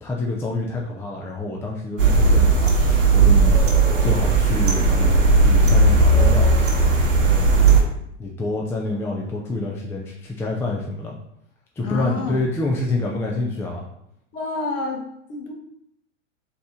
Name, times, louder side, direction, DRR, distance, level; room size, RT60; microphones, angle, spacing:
voice 1, 0.0-3.6 4.0-6.5 7.2-11.1 11.8-13.9, left 2 dB, 5° left, -2 dB, 0.4 m, -28 dB
sound 1, 2.0-7.8, right 3 dB, 85° right, 1.0 m, -16 dB
voice 2, 11.8-12.4 14.3-15.5, left 4 dB, 40° left, 2 dB, 1.0 m, -28 dB
3.9 x 2.9 x 3.6 m, 0.77 s
hypercardioid pair, 100°, 37 cm